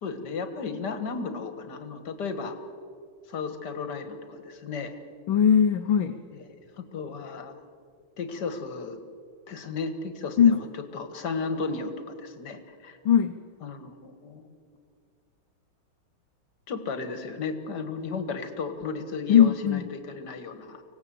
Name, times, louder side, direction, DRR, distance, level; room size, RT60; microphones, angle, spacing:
voice 1, 0.0-2.6 3.3-5.0 6.8-7.5 8.2-9.0 9.5-10.7 10.9-13.0 13.6-14.5 16.7-20.8, left 4 dB, 55° left, 8 dB, 2.1 m, -34 dB
voice 2, 5.3-6.2 10.4-10.6 13.0-13.4 19.3-19.9, left 8 dB, 70° left, 7 dB, 1.6 m, -20 dB
25.0 x 18.0 x 7.7 m, 2.2 s
omnidirectional pair, 2.3 m